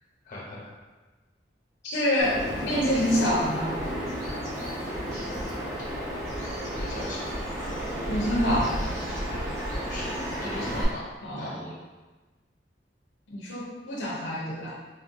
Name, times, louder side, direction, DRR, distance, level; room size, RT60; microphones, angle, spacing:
voice 1, 0.2-0.7 4.8-5.6 6.6-7.2 9.8-10.1 10.4-11.0 11.4-11.7, left 1 dB, 45° left, -6 dB, 1.1 m, -40 dB
voice 2, 1.8-3.8 8.1-8.8 11.2-11.6 13.3-14.7, equal, 90° left, -5 dB, 0.7 m, -26 dB
Bird vocalization bird call bird song, 2.2-10.8, equal, 15° right, 1.0 m, -32 dB
4.1 x 2.6 x 2.6 m, 1.2 s
head